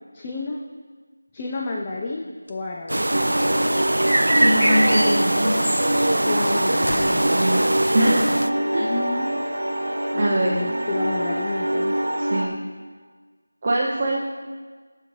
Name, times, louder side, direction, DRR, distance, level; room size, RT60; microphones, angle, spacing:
voice 1, 0.1-0.6 1.3-3.0 6.2-7.2 8.8-9.4 10.1-12.0, left 3 dB, 15° left, 0 dB, 0.4 m, -31 dB
sound 1, 2.5-3.7 4.1-4.6 4.9-7.7, left 1 dB, 70° left, 1.0 m, -38 dB
sound 2, 2.9-8.5, right 1 dB, 85° right, 0.3 m, -22 dB
sound 3, 3.1-12.5, right 1 dB, 70° right, 1.1 m, -25 dB
voice 2, 4.3-5.5 7.3-7.6 7.9-8.3 8.7-8.9 10.2-10.6 12.2-12.6 13.6-14.2, right 1 dB, 25° right, -4 dB, 0.7 m, -22 dB
12.5 x 6.7 x 3.2 m, 1.5 s
figure-of-eight pair, 175°, 0 cm